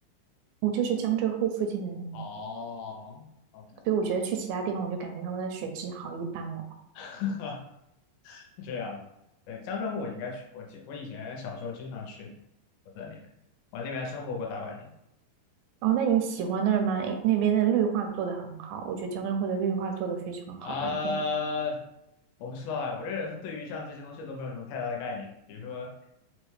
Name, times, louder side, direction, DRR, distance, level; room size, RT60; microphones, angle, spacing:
voice 1, 0.6-2.2 3.9-6.6 15.8-21.1, right 8 dB, 80° right, 4 dB, 2.2 m, -28 dB
voice 2, 2.1-3.3 3.5-3.7 7.0-7.6 8.2-9.0 9.5-12.3 13.0-13.2 13.7-14.9 20.6-21.8 22.4-25.9, left 4 dB, 80° left, 0 dB, 2.3 m, -35 dB
5.7 x 2.2 x 3.1 m, 0.84 s
omnidirectional pair, 4.2 m